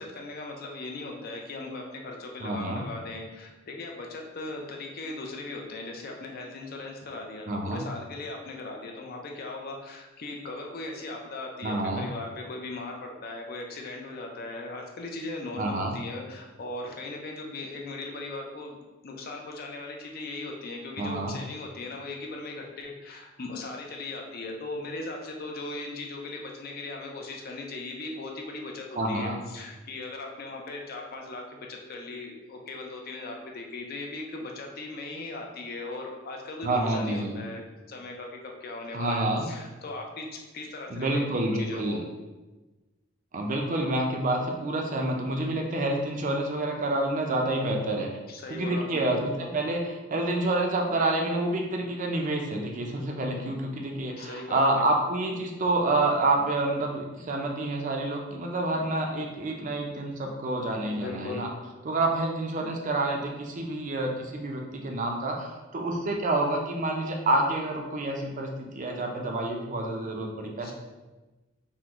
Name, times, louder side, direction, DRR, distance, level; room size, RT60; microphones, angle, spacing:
voice 1, 0.0-37.6 37.9-42.0 48.3-49.3 54.2-54.8 61.0-61.5 70.6-70.7, left 2 dB, 50° left, 2 dB, 0.5 m, -38 dB
voice 2, 2.4-2.9 7.5-7.9 11.6-12.1 15.6-15.9 21.0-21.4 29.0-29.4 36.6-37.4 38.9-39.5 40.9-42.0 43.3-48.1 48.5-61.5 61.8-70.7, right 2 dB, 40° right, 1 dB, 0.4 m, -28 dB
3.6 x 2.1 x 2.9 m, 1.1 s
head